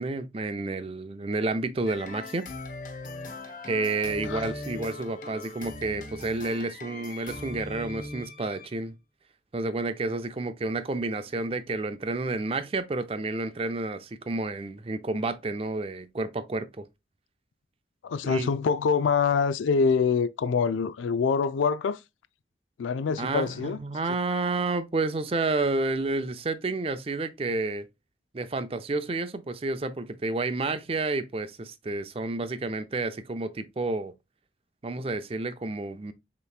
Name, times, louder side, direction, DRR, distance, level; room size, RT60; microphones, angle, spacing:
voice 1, 0.0-2.5 3.7-9.0 9.5-16.9 18.2-18.5 23.2-27.9 28.3-34.1 34.8-36.1, right 3 dB, 30° right, 0.4 m, -30 dB
sound 1, 1.9-8.7, left 2 dB, 45° left, 0.9 m, -40 dB
voice 2, 18.0-22.0 22.8-23.8, left 5 dB, 90° left, 0.4 m, -25 dB
6.5 x 3.0 x 2.3 m
head